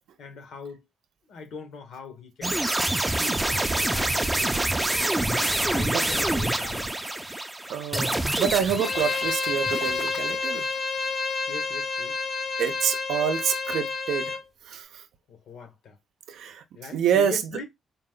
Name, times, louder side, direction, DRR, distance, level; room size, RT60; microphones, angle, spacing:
voice 1, 0.2-0.8 1.3-2.6 3.1-6.9 11.5-12.2 14.2-14.4 15.3-16.0 16.7-17.6, left 4 dB, 75° left, 1.3 m, -41 dB
sound 1, 2.4-10.5, right 1 dB, 10° right, 0.4 m, -26 dB
voice 2, 7.7-10.7 12.6-14.3 14.7-15.0 16.3-16.6 16.9-17.4, right 8 dB, 90° right, 0.5 m, -27 dB
Bowed string instrument, 8.8-14.4, left 4 dB, 40° left, 0.6 m, -29 dB
4.0 x 2.2 x 3.7 m
cardioid pair, 155°, 0 cm